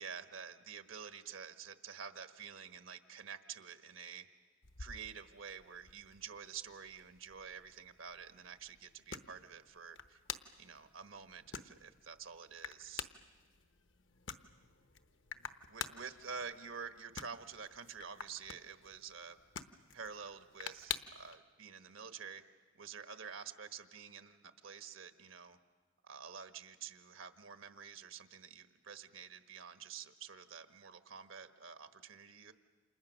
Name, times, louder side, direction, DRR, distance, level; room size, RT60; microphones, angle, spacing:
voice 1, 0.0-4.3 4.8-10.2 10.6-13.1 15.7-19.4 19.9-22.4 22.7-25.6 26.0-32.5, right 6 dB, 85° right, 8 dB, 1.3 m, -49 dB
sound 1, 4.6-21.4, left 7 dB, 70° left, 1.0 m, -49 dB
29.5 x 27.5 x 6.4 m, 1.5 s
head